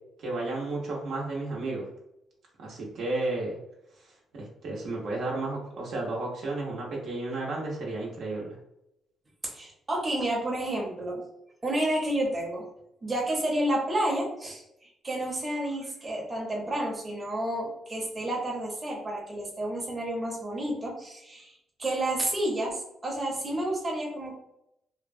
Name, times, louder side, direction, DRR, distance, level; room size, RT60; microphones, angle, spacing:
voice 1, 0.2-1.9 2.6-3.6 4.0-8.6, right 2 dB, 70° right, -3 dB, 0.9 m, -33 dB
voice 2, 9.4-11.2 11.6-12.7 13.0-21.5 21.8-24.3, right 1 dB, 25° right, -2 dB, 0.9 m, -30 dB
3.0 x 2.1 x 2.5 m, 0.82 s
cardioid pair, 90°, 0 cm